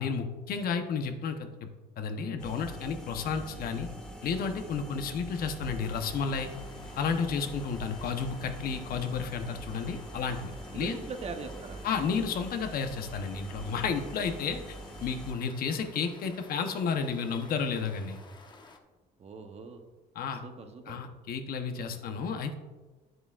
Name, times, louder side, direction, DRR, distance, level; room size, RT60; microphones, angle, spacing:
voice 1, 0.0-1.7 2.0-3.9 4.2-6.5 7.0-11.0 11.8-18.2 20.1-20.4 20.9-22.6, left 6 dB, 60° left, 6 dB, 1.0 m, -32 dB
sound 1, 2.4-15.3, right 1 dB, 5° left, 2.0 m, -44 dB
sound 2, 5.8-18.8, left 3 dB, 25° left, 0.9 m, -53 dB
voice 2, 10.7-11.8 19.2-19.8 20.4-21.0 21.7-22.0, right 4 dB, 40° right, 5 dB, 1.0 m, -41 dB
10.0 x 7.8 x 2.5 m, 1.2 s
cardioid pair, 110°, 17 cm